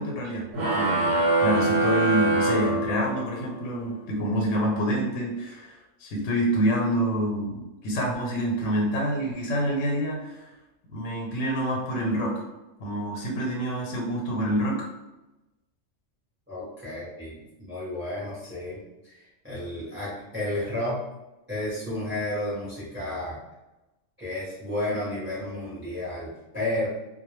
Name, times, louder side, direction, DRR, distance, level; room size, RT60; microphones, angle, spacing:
voice 1, 0.0-10.5 10.9-12.4 12.8-14.9, equal, 85° left, 0 dB, 1.0 m, -27 dB
sound 1, 0.5-3.4, right 2 dB, 85° right, 1.0 m, -24 dB
voice 2, 16.5-21.0 21.5-23.4 24.2-26.9, left 1 dB, 10° right, -9 dB, 0.6 m, -32 dB
2.2 x 2.0 x 3.0 m, 1.0 s
omnidirectional pair, 1.3 m